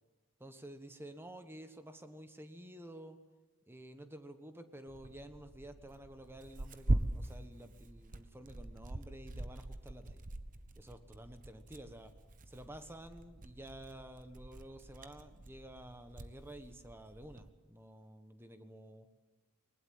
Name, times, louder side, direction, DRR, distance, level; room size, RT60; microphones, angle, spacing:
voice 1, 0.4-3.2 3.7-10.2 10.8-12.1 12.5-19.1, right 1 dB, 10° right, 8 dB, 1.3 m, -51 dB
Tearing, 4.9-17.5, right 1 dB, 40° right, 1.0 m, -42 dB
20.0 x 19.5 x 7.8 m, 1.2 s
head